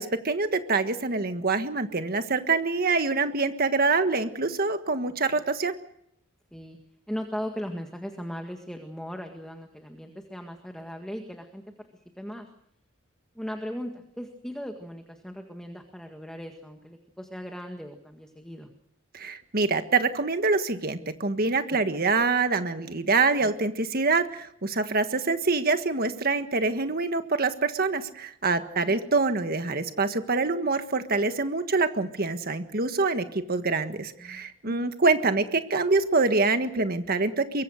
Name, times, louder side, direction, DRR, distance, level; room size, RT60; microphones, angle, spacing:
voice 1, 0.0-5.7 19.1-37.6, right 3 dB, 45° right, 8 dB, 1.6 m, -25 dB
voice 2, 7.1-11.6 12.2-12.5 13.4-18.7 23.4-23.5 34.2-34.8, equal, 5° left, 4 dB, 1.8 m, -38 dB
24.0 x 22.5 x 6.5 m, 0.72 s
head